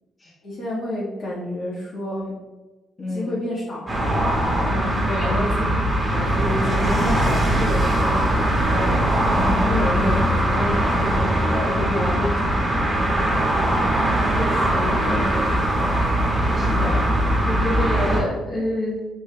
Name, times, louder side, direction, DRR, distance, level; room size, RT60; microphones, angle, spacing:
voice 1, 0.4-2.3 3.1-4.2 4.6-4.9 5.2-5.6 6.1-9.0 9.5-12.9 14.3-15.3, left 1 dB, 55° left, -5 dB, 1.4 m, -29 dB
voice 2, 3.0-3.4 5.1-5.4 9.3-9.7 15.0-15.6 16.5-17.1 17.5-19.0, left 1 dB, 30° left, -6 dB, 1.0 m, -28 dB
sound 1, 3.9-18.2, right 1 dB, 20° right, 1.5 m, -21 dB
5.6 x 3.4 x 2.2 m, 1.2 s
cardioid pair, 90°, 0 cm